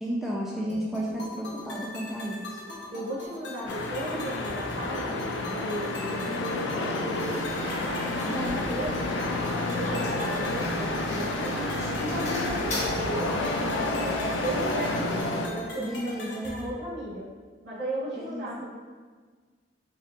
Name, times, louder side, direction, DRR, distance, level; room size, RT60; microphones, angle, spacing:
voice 1, 0.0-2.6 8.1-8.6 15.8-16.5 18.1-18.7, equal, ahead, -5 dB, 0.3 m, -33 dB
sound 1, 0.7-16.7, left 1 dB, 70° left, 0.9 m, -41 dB
voice 2, 2.9-7.4 7.7-9.1 9.5-17.3 17.6-18.7, right 1 dB, 65° right, -9 dB, 1.5 m, -36 dB
sound 2, 3.7-15.5, left 2 dB, 90° left, 0.4 m, -30 dB
sound 3, 7.1-15.2, left 1 dB, 40° left, 0.8 m, -37 dB
5.5 x 2.8 x 2.5 m, 1.5 s
head